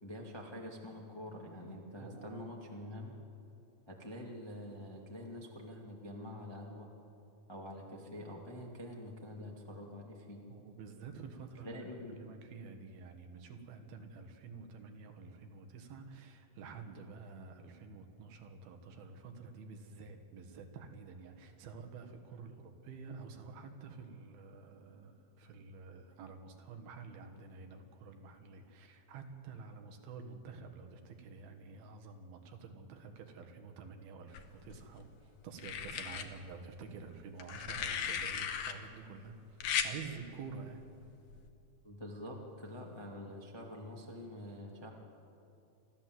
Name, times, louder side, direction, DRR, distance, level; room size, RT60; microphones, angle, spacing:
voice 1, 0.0-3.1 3.9-6.9 7.5-10.4 11.6-12.3 41.8-44.9, left 1 dB, 20° left, -1 dB, 0.7 m, -46 dB
voice 2, 2.0-2.5 10.5-11.8 12.1-40.8, right 5 dB, 80° right, 5 dB, 3.4 m, -49 dB
sound 1, 34.3-35.0 35.6-36.3 37.4-38.7 39.6-39.9 41.3-41.5, left 8 dB, 65° left, 1.8 m, -36 dB
27.5 x 13.0 x 7.8 m, 2.6 s
omnidirectional pair, 4.3 m